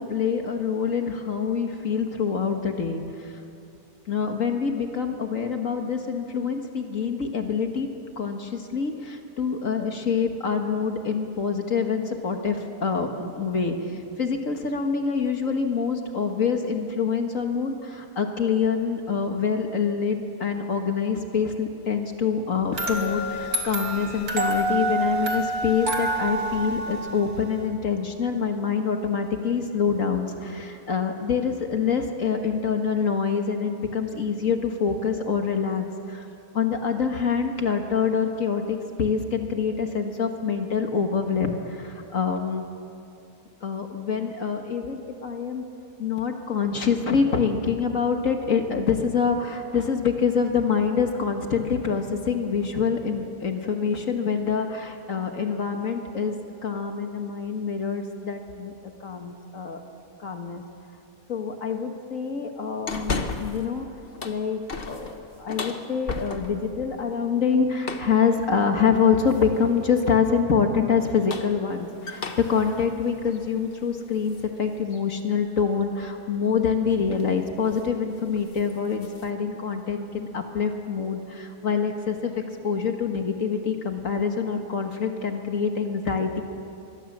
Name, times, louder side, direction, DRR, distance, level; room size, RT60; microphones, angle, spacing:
voice 1, 0.0-3.3 4.1-7.9 8.2-36.3 36.5-42.6 43.6-45.6 46.0-56.4 56.6-59.8 60.2-60.6 61.3-63.9 64.2-65.1 65.4-82.3 82.6-86.4, left 6 dB, 60° left, 4 dB, 1.9 m, -26 dB
sound 1, 22.7-27.7, right 2 dB, 85° right, 2.8 m, -28 dB
sound 2, 62.9-63.7 64.0-66.7 67.8-68.2 69.3-69.7 71.0-74.5 74.9-75.0 76.5-76.8 77.1-77.4 77.7-77.9 78.2-79.3, left 3 dB, 40° left, 1.4 m, -35 dB
25.0 x 22.5 x 7.4 m, 2.6 s
omnidirectional pair, 1.6 m